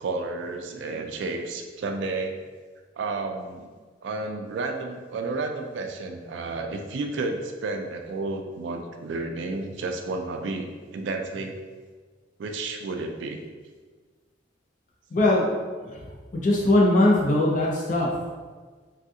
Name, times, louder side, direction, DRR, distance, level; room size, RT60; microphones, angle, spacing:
voice 1, 0.0-2.4 3.0-3.7 4.0-11.6 12.4-13.4, right 3 dB, 75° right, 4 dB, 0.3 m, -31 dB
voice 2, 15.1-15.5 15.8-16.0 16.3-18.1, left 1 dB, 45° left, -3 dB, 0.4 m, -20 dB
3.4 x 2.3 x 2.7 m, 1.5 s
head